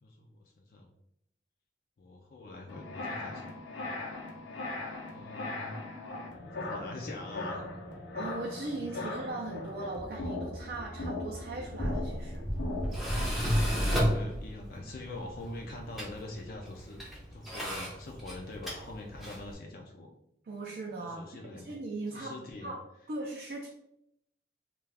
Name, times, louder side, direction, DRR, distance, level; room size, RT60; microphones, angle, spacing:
voice 1, 0.0-0.9 2.0-4.0 5.1-5.8 6.4-7.7 13.7-17.0 17.3-20.1 21.0-21.7 22.1-22.7, left 2 dB, 50° left, 2 dB, 0.3 m, -44 dB
sound 1, 2.7-13.6, left 2 dB, 85° left, 0.6 m, -39 dB
voice 2, 8.1-12.4 20.4-22.8 23.1-23.7, right 2 dB, 55° right, -1 dB, 0.4 m, -39 dB
Tools, 11.6-19.5, equal, ahead, 0.5 m, -33 dB
2.3 x 2.3 x 3.3 m, 0.76 s
head